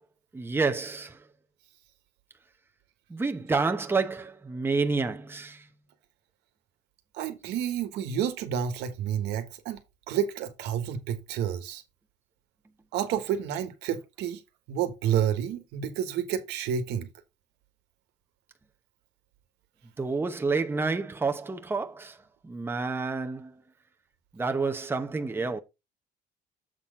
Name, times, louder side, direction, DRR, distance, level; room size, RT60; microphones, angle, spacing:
voice 1, 0.3-1.2 3.1-5.6 20.0-22.2 22.4-23.5 24.3-25.6, right 4 dB, 15° right, 0.8 m, -29 dB
voice 2, 7.1-9.8 10.1-11.8 12.9-14.4 14.7-17.1, right 9 dB, 90° right, 1.4 m, -30 dB
7.5 x 4.1 x 5.1 m
cardioid pair, 110°, 17 cm